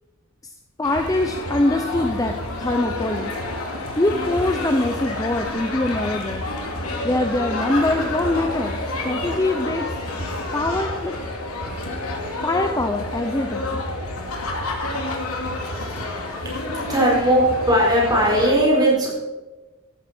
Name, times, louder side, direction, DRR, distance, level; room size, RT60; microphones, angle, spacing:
sound 1, 0.8-18.5, left 2 dB, 90° left, 2.7 m, -29 dB
voice 1, 0.8-3.3 4.0-6.5 7.0-9.9 10.5-11.1 12.4-13.8, left 2 dB, 15° left, 5 dB, 0.7 m, -23 dB
voice 2, 16.7-19.1, right 1 dB, 20° right, -3 dB, 4.7 m, -18 dB
14.5 x 12.5 x 4.4 m, 1.2 s
head